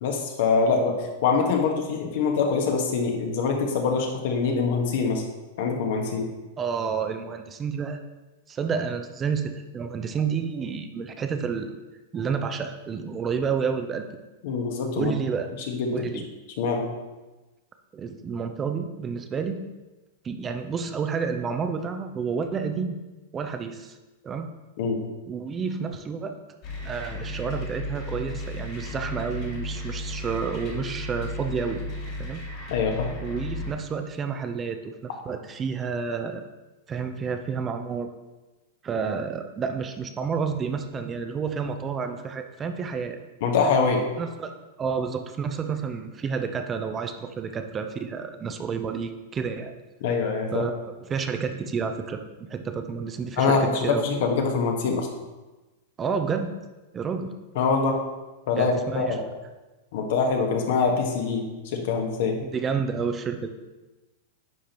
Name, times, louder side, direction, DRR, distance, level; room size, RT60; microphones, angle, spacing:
voice 1, 0.0-0.9 1.2-5.2 5.6-6.3 14.4-15.1 15.7-16.0 16.6-16.8 24.8-25.0 32.7-33.1 43.4-44.0 50.0-50.6 53.4-55.1 57.5-58.0 58.5-59.2 59.9-62.4, left 5 dB, 65° left, 2 dB, 1.4 m, -24 dB
voice 2, 6.6-8.0 8.5-11.8 12.1-14.0 14.9-15.5 15.9-16.3 17.9-19.6 20.2-23.0 23.3-24.0 24.2-24.5 25.3-26.4 26.8-31.8 32.2-32.4 33.2-34.9 35.2-36.4 36.9-38.1 38.8-43.2 44.2-44.5 44.8-49.8 50.5-52.2 52.5-54.1 56.0-56.6 56.9-57.3 58.6-59.2 62.4-63.5, right 6 dB, 25° right, 7 dB, 0.6 m, -30 dB
sound 1, 26.6-33.7, left 1 dB, 50° left, 2.6 m, -34 dB
9.8 x 5.1 x 3.0 m, 1.1 s
hypercardioid pair, 120°, 0 cm